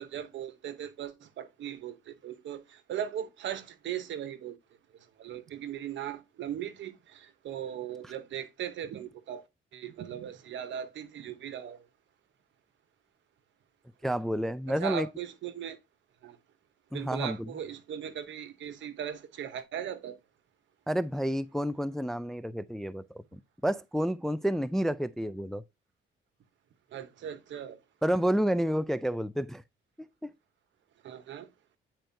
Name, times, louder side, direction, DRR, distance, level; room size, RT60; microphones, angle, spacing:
voice 1, 0.0-4.6 5.2-9.4 9.7-11.8 14.7-15.8 16.2-16.4 16.9-20.1 26.9-27.8 31.0-31.5, right 10 dB, 70° right, 0.9 m, -38 dB
voice 2, 14.0-15.1 16.9-17.5 20.9-25.6 28.0-29.6, equal, ahead, 0.3 m, -30 dB
9.0 x 4.4 x 2.6 m
cardioid pair, 90°, 20 cm